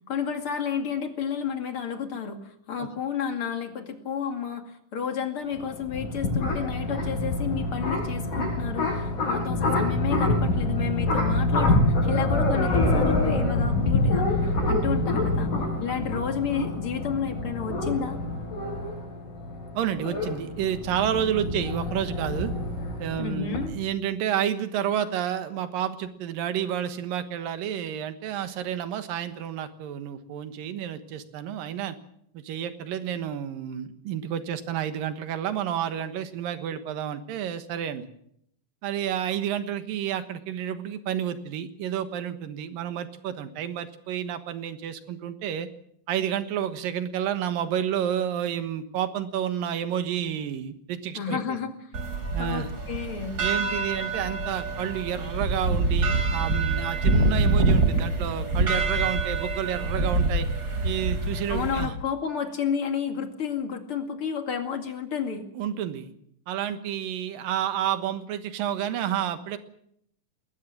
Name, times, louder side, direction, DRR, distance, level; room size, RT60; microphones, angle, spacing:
voice 1, 0.1-15.5 15.8-18.2 23.2-23.7 51.1-51.7 52.3-53.4 61.5-65.5, left 7 dB, 45° left, 5 dB, 2.8 m, -31 dB
sound 1, 5.5-23.7, left 2 dB, 65° left, 7.7 m, -26 dB
voice 2, 19.8-22.5 23.0-32.0 32.3-38.0 38.8-45.7 46.1-51.6 52.3-52.7 53.4-60.5 60.8-61.9 65.6-66.1 66.5-69.6, right 10 dB, 85° right, 10 dB, 3.1 m, -30 dB
sound 2, 51.9-61.9, right 3 dB, 30° right, 3.2 m, -25 dB
20.5 x 19.5 x 7.4 m, 0.71 s
omnidirectional pair, 4.0 m